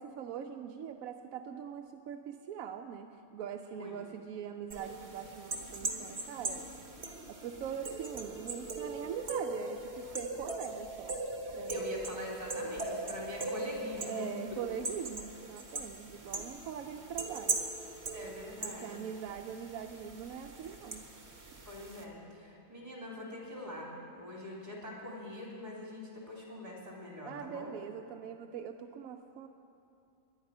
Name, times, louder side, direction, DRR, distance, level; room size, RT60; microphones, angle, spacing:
voice 1, 0.0-6.6 7.3-11.2 11.5-11.9 14.0-17.6 18.6-21.1 27.3-29.5, right 8 dB, 80° right, 5 dB, 1.0 m, -42 dB
voice 2, 3.7-4.0 11.7-14.6 18.1-19.0 21.6-27.7, left 1 dB, 30° right, -3 dB, 3.4 m, -44 dB
sound 1, 4.7-22.0, right 2 dB, 50° right, 1.5 m, -40 dB
18.5 x 11.0 x 5.5 m, 2.6 s
omnidirectional pair, 1.4 m